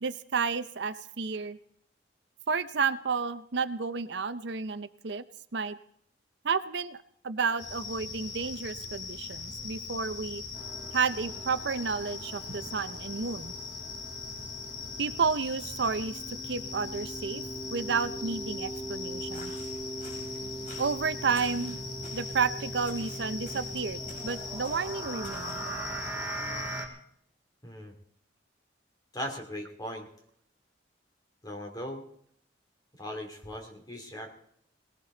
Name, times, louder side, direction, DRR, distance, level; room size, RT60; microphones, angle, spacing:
voice 1, 0.0-1.6 2.5-5.2 5.5-5.8 6.4-10.4 10.9-13.5 15.0-17.4 17.7-19.5 20.8-21.8 22.1-25.6, right 5 dB, 60° right, 12 dB, 0.6 m, -31 dB
sound 1, 7.6-26.8, left 4 dB, 75° left, 2.9 m, -40 dB
sound 2, 10.5-26.9, right 2 dB, 10° right, 2.6 m, -41 dB
sound 3, 19.3-25.8, left 1 dB, 40° left, 4.8 m, -51 dB
voice 2, 27.6-27.9 29.1-30.1 31.4-32.0 33.0-34.3, equal, 20° left, 3 dB, 2.7 m, -38 dB
19.0 x 17.5 x 3.9 m, 0.67 s
head